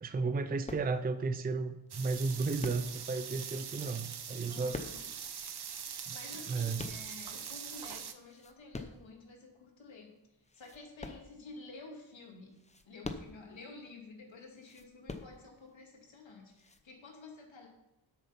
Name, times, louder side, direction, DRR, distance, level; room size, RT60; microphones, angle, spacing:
voice 1, 0.0-4.8 6.1-6.2 6.5-6.8, right 4 dB, 20° right, 10 dB, 0.5 m, -33 dB
sound 1, 0.7-1.3 2.1-3.2 4.2-5.4 6.1-7.5 8.0-9.1 9.7-9.8 10.4-11.7 12.5-13.6 14.5-15.7 16.5-16.8, left 3 dB, 15° left, 0.7 m, -45 dB
sound 2, 1.9-8.1, right 7 dB, 55° right, 0.9 m, -43 dB
voice 2, 4.5-5.1 6.1-10.2 10.5-12.6 12.9-17.7, left 3 dB, 75° left, 1 dB, 2.4 m, -51 dB
8.5 x 6.8 x 5.7 m, 0.93 s
wide cardioid pair, 120°, 46 cm